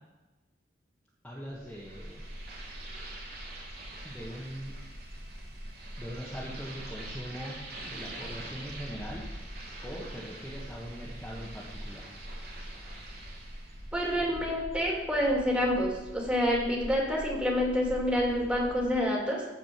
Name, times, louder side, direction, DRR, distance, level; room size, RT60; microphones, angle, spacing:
voice 1, 1.2-2.2 4.0-4.7 6.0-7.6 7.8-9.2 9.8-12.1, equal, 10° left, -6 dB, 1.6 m, -41 dB
sound 1, 1.5-19.0, equal, 40° right, 1.9 m, -45 dB
sound 2, 1.7-13.9, right 2 dB, 60° right, 3.0 m, -46 dB
voice 2, 13.9-19.4, equal, 5° right, -3 dB, 2.7 m, -28 dB
14.5 x 5.1 x 6.1 m, 1.1 s
head